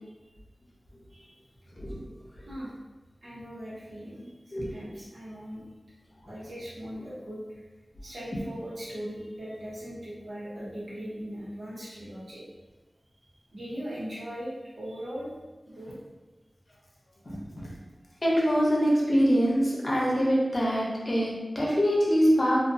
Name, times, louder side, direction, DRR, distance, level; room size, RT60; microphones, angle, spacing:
voice 1, 3.2-5.6 6.3-7.6 8.0-12.4 13.5-15.3 15.7-15.9, equal, 75° right, -8 dB, 0.9 m, -39 dB
voice 2, 4.5-4.9 17.2-17.7 18.2-22.6, equal, 55° left, -4 dB, 0.7 m, -24 dB
2.5 x 2.3 x 2.6 m, 1.2 s
wide cardioid pair, 45°, 0 cm